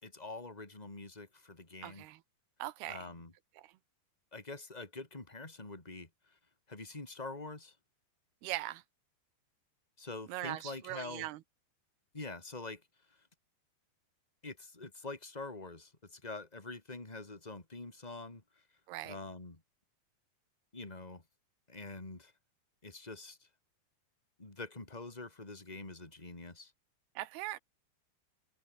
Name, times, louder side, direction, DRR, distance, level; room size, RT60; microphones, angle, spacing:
voice 1, 0.0-2.0 2.9-3.3 4.3-6.1 6.7-7.7 10.0-11.3 12.1-12.8 14.4-18.4 19.0-19.6 20.7-21.2 21.7-22.3 22.8-23.5 24.4-26.7, left 3 dB, 10° left, 2.5 m, -45 dB
voice 2, 1.8-2.2 2.6-3.0 8.4-8.8 10.3-11.4 18.9-19.2 27.2-27.6, right 16 dB, 70° right, 2.8 m, -40 dB
omnidirectional pair, 5.1 m